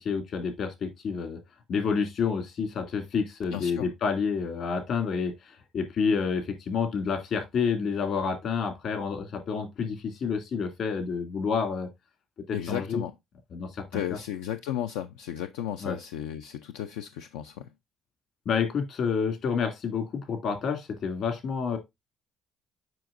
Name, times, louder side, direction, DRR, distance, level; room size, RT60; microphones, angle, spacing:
voice 1, 0.0-1.4 1.7-11.9 12.5-13.0 13.5-13.8 14.1-14.2 15.8-16.0 18.5-21.8, left 5 dB, 65° left, 2.2 m, -29 dB
voice 2, 3.5-3.9 12.5-13.1 13.9-17.7, left 11 dB, 90° left, 0.4 m, -34 dB
7.5 x 5.3 x 2.5 m
supercardioid pair, 65°, 0 cm